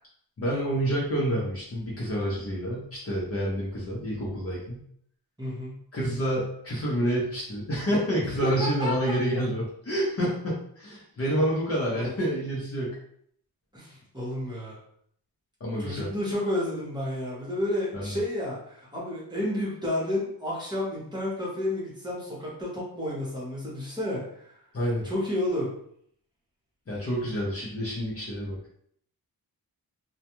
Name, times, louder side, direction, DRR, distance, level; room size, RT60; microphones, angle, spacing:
voice 1, 0.4-4.8 5.9-13.0 15.6-16.1 17.9-18.1 24.7-25.0 26.9-28.6, equal, 40° left, -5 dB, 0.7 m, -28 dB
voice 2, 5.4-5.7 8.2-8.9 11.9-12.1 13.7-14.8 15.8-24.6 25.0-25.7, left 1 dB, 10° right, -7 dB, 0.9 m, -31 dB
2.3 x 2.2 x 2.9 m, 0.66 s
wide cardioid pair, 140°, 39 cm